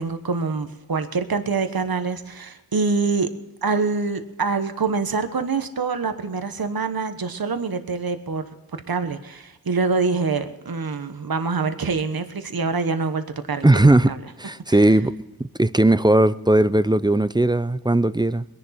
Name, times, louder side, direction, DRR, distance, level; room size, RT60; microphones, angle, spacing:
voice 1, 0.0-3.3 3.6-8.4 8.9-14.2 14.7-14.9, right 4 dB, 70° right, 1.2 m, -25 dB
voice 2, 13.6-14.1 14.4-15.1 15.4-18.4, right 1 dB, 10° right, 0.5 m, -18 dB
22.5 x 11.0 x 4.3 m
wide cardioid pair, 60°, 37 cm